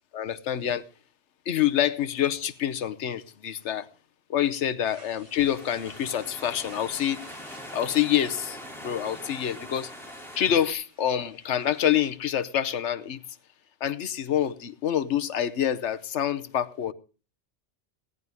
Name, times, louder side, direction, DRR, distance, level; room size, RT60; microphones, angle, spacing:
voice 1, 0.1-0.8 1.5-3.9 4.3-7.2 7.7-8.6 8.8-9.9 10.3-13.2 13.8-16.9, left 10 dB, 85° left, 1.1 m, -26 dB
sound 1, 4.8-12.1, right 1 dB, 55° right, 3.2 m, -52 dB
sound 2, 5.3-10.7, equal, ahead, 2.8 m, -42 dB
17.0 x 11.0 x 3.4 m
omnidirectional pair, 1.2 m